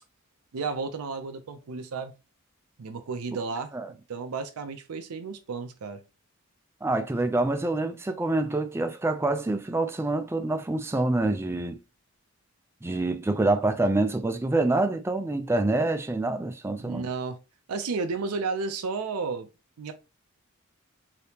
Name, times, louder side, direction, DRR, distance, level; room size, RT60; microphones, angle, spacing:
voice 1, 0.5-2.1 2.8-6.0 16.8-17.4 17.7-19.5 19.8-19.9, right 4 dB, 80° right, 0.5 m, -32 dB
voice 2, 6.8-11.8 12.8-17.0, right 2 dB, 10° right, 0.3 m, -26 dB
3.4 x 2.8 x 2.8 m
head